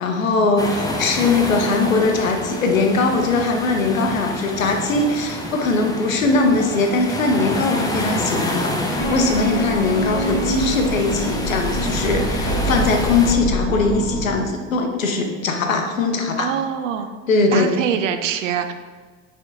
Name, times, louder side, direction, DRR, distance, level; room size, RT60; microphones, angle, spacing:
voice 1, 0.0-16.5 17.3-17.7, left 3 dB, 85° left, 4 dB, 0.6 m, -20 dB
sound 1, 0.6-13.3, left 1 dB, 10° left, 0.6 m, -28 dB
sound 2, 9.0-14.4, right 1 dB, 35° left, 1.5 m, -25 dB
voice 2, 16.4-17.2 17.5-18.7, right 8 dB, 70° right, 8 dB, 0.5 m, -24 dB
4.4 x 3.5 x 2.7 m, 1.4 s
figure-of-eight pair, 70°, 39 cm